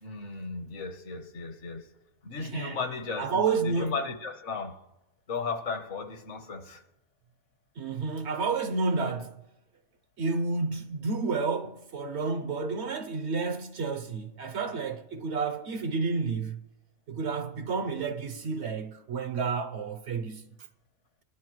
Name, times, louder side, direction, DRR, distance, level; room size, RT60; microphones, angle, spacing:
voice 1, 0.0-1.9 2.2-4.8 5.3-6.8, left 4 dB, 60° left, 1.3 m, -35 dB
voice 2, 2.4-2.8 3.2-3.9 7.8-9.4 10.2-16.6 17.1-20.4, right 4 dB, 60° right, 0.8 m, -30 dB
19.5 x 11.0 x 3.0 m
omnidirectional pair, 1.4 m